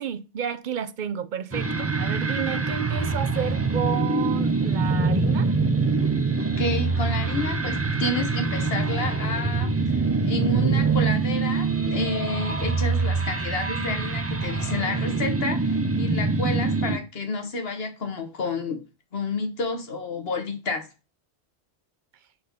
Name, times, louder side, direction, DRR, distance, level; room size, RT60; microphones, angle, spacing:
voice 1, 0.0-5.6, right 8 dB, 55° right, 0.7 m, -31 dB
sound 1, 1.5-17.0, right 4 dB, 20° right, 0.4 m, -24 dB
voice 2, 6.6-18.8 19.1-20.9, left 3 dB, 60° left, 1.5 m, -30 dB
5.5 x 4.3 x 5.1 m
omnidirectional pair, 1.1 m